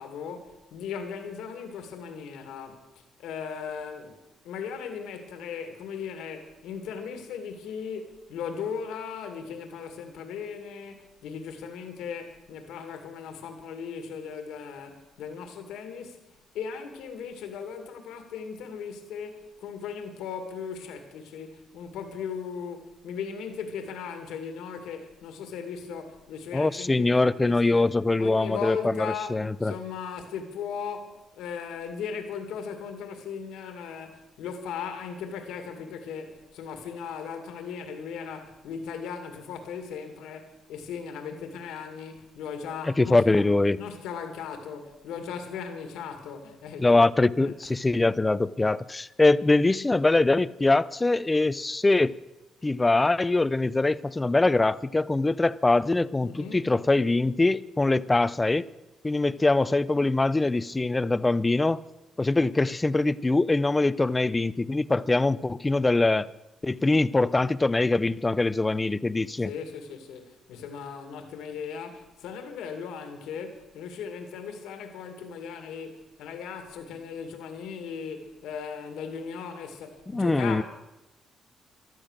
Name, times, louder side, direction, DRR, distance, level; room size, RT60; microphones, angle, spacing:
voice 1, 0.0-16.3 16.5-27.9 28.2-43.5 43.8-47.0 47.4-47.7 56.2-56.7 69.4-80.6, left 6 dB, 90° left, 2.1 m, -38 dB
voice 2, 26.5-29.7 43.0-43.8 46.8-52.1 52.6-58.7 59.0-61.8 62.2-66.3 66.6-69.5 80.1-80.6, left 2 dB, 20° left, 0.5 m, -23 dB
15.5 x 12.0 x 6.5 m
cardioid pair, 90°, 0 cm